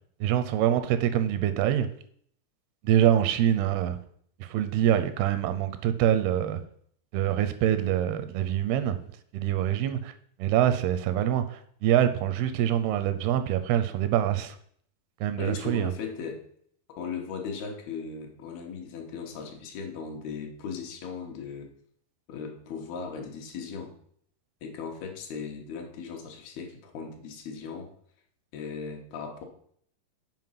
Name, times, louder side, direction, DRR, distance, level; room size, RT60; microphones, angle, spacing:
voice 1, 0.2-1.9 2.8-4.0 4.4-6.6 7.1-9.0 9.3-10.1 10.4-14.6 15.2-15.9, right 11 dB, 85° right, 10 dB, 2.5 m, -25 dB
voice 2, 15.4-16.4 16.9-21.7 22.3-23.9 24.6-27.9 28.5-29.5, left 5 dB, 75° left, 3 dB, 3.0 m, -37 dB
7.6 x 5.1 x 5.6 m, 0.63 s
omnidirectional pair, 4.6 m